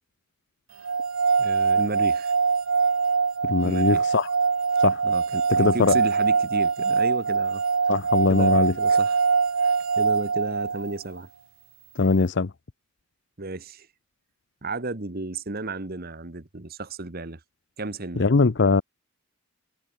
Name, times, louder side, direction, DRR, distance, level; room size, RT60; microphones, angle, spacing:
sound 1, 0.8-11.0, right 5 dB, 70° right, 0.9 m, -23 dB
voice 1, 1.4-2.3 3.6-4.1 5.0-7.9 8.3-9.2 9.6-11.3 13.4-13.9 14.6-17.4 17.8-18.3, right 2 dB, 40° right, 1.3 m, -33 dB
voice 2, 3.4-4.3 4.8-5.0 5.6-5.9 7.9-8.7 12.0-12.5 18.2-18.8, left 4 dB, 50° left, 0.6 m, -21 dB
head